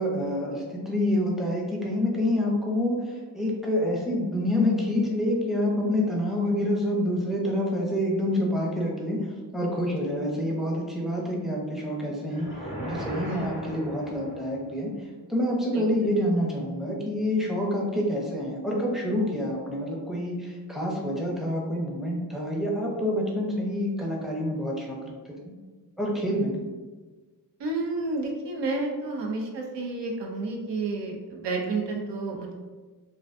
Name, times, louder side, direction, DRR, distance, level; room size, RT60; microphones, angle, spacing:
voice 1, 0.0-9.3 9.5-25.0 25.4-25.5 26.0-26.5, left 1 dB, ahead, -3 dB, 0.6 m, -27 dB
sound 1, 12.3-14.6, equal, 70° right, 1.0 m, -36 dB
voice 2, 27.6-32.5, right 3 dB, 85° right, 0 dB, 0.5 m, -30 dB
2.4 x 2.2 x 2.5 m, 1.3 s
cardioid pair, 60°, 41 cm